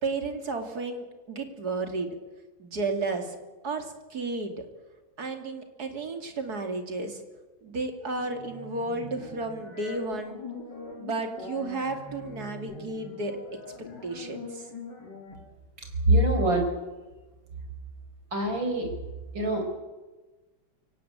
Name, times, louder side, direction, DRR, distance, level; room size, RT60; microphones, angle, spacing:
voice 1, 0.0-2.1 2.6-3.4 3.6-4.7 5.2-7.2 7.6-10.4 11.0-13.4 14.0-14.7, right 3 dB, 50° right, 5 dB, 3.1 m, -33 dB
sound 1, 8.2-15.3, left 3 dB, 65° left, 4.5 m, -43 dB
voice 2, 16.0-16.7 18.3-18.9 19.3-19.6, right 1 dB, 75° right, 4 dB, 5.5 m, -23 dB
24.0 x 17.5 x 8.9 m, 1.2 s
omnidirectional pair, 2.1 m